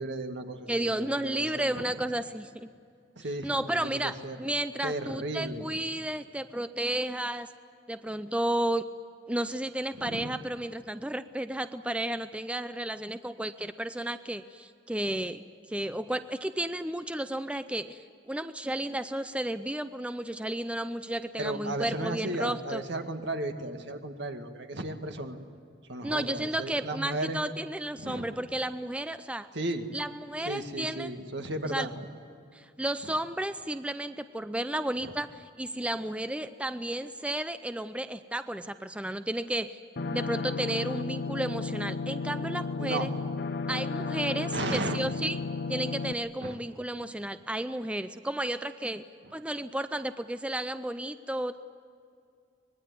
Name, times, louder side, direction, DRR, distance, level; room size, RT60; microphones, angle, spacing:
voice 1, 0.0-1.9 3.2-3.5 3.8-4.4 4.8-5.7 9.9-10.4 21.4-25.4 25.9-27.4 28.0-28.4 29.5-29.9 30.5-32.0 35.0-35.1 42.8-43.1 44.5-45.0 46.4-46.6 49.2-49.3, right 2 dB, 65° right, 5 dB, 2.1 m, -35 dB
voice 2, 0.7-2.7 3.4-7.5 7.9-8.8 9.3-15.4 15.7-22.8 26.0-29.5 29.9-31.1 31.6-31.9 32.5-39.8 40.1-43.1 43.7-45.4 45.7-49.0 49.3-51.6, right 1 dB, 5° right, 11 dB, 0.5 m, -32 dB
sound 1, 40.0-46.1, left 4 dB, 60° left, 0.8 m, -33 dB
25.0 x 21.0 x 9.6 m, 2.4 s
head